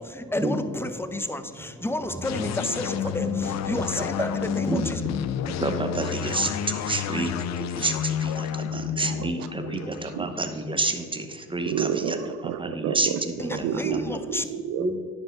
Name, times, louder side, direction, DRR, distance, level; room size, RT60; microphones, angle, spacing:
voice 1, 0.0-5.0 13.4-14.4, left 1 dB, 10° left, 10 dB, 0.6 m, -31 dB
sound 1, 2.2-11.7, left 8 dB, 60° left, 0.5 m, -31 dB
voice 2, 5.3-12.2 12.6-13.3 14.8-15.0, right 2 dB, 15° right, 7 dB, 0.9 m, -29 dB
voice 3, 8.7-10.3 11.7-15.0, right 8 dB, 85° right, 12 dB, 0.6 m, -31 dB
10.5 x 5.3 x 3.6 m, 2.2 s
supercardioid pair, 75°, 31 cm